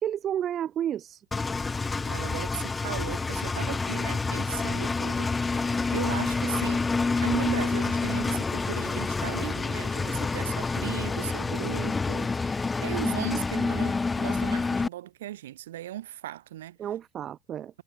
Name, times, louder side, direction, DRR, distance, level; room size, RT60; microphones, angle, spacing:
voice 1, 0.0-1.2 16.8-17.7, right 10 dB, 25° right, 1.2 m, -31 dB
Engine, 1.3-14.9, left 4 dB, 10° left, 2.4 m, -28 dB
voice 2, 2.1-6.8 7.2-16.8, right 13 dB, 55° right, 4.3 m, -37 dB
figure-of-eight pair, 90°, 0 cm